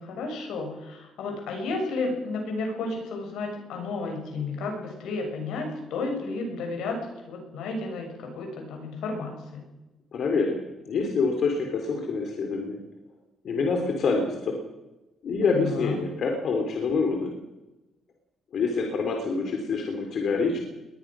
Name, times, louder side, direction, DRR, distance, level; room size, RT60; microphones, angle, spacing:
voice 1, 0.0-7.0 7.3-9.6 15.4-16.0, left 3 dB, 85° left, 3 dB, 7.3 m, -32 dB
voice 2, 10.1-10.6 10.9-12.8 13.4-14.5 15.2-17.3 18.5-20.6, left 4 dB, 60° left, 2 dB, 3.7 m, -26 dB
21.0 x 20.0 x 6.4 m, 1.0 s
cardioid pair, 115°, 0 cm